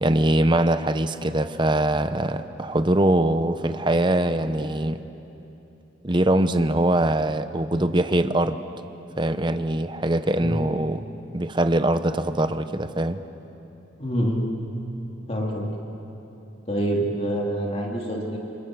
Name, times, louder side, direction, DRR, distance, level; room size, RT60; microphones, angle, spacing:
voice 1, 0.0-5.0 6.0-8.6 9.2-11.0 11.3-13.2, right 1 dB, 25° right, 10 dB, 0.8 m, -22 dB
voice 2, 14.0-14.5 15.3-15.7 16.7-18.4, equal, 30° left, -1 dB, 2.9 m, -26 dB
29.5 x 27.5 x 6.3 m, 2.9 s
head